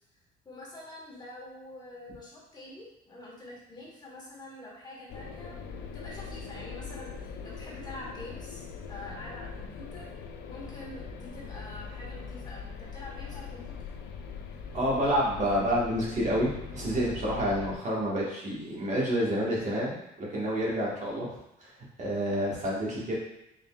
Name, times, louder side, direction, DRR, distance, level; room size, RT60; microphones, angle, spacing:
voice 1, 0.4-5.6 5.9-10.1 10.5-13.8 22.9-23.1, left 1 dB, 25° left, -4 dB, 1.1 m, -46 dB
sound 1, 5.1-17.8, left 6 dB, 85° left, 0.4 m, -41 dB
voice 2, 14.7-21.3 21.6-21.7 22.0-23.1, equal, 45° right, -5 dB, 1.3 m, -29 dB
3.8 x 3.7 x 2.2 m, 0.89 s
cardioid pair, 110°, 17 cm